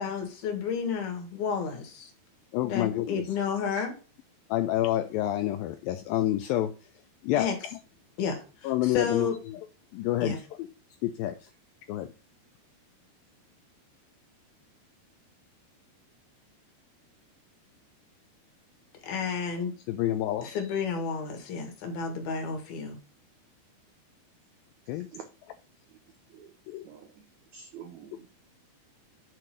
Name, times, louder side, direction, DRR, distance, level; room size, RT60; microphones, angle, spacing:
voice 1, 0.0-2.1 2.6-3.9 7.4-7.6 8.2-9.4 10.2-10.4 19.0-19.8 20.4-23.0, left 6 dB, 70° left, 3.6 m, -31 dB
voice 2, 2.5-3.2 4.5-6.7 7.2-7.5 8.6-9.6 9.9-10.7 11.0-11.4 11.9-12.1 19.9-20.6 24.9-25.1 26.7-26.8, left 14 dB, 90° left, 2.1 m, -28 dB
voice 3, 24.9-25.2 26.3-26.5 26.8-28.3, right 8 dB, 90° right, 1.6 m, -48 dB
7.9 x 3.8 x 6.0 m
omnidirectional pair, 4.7 m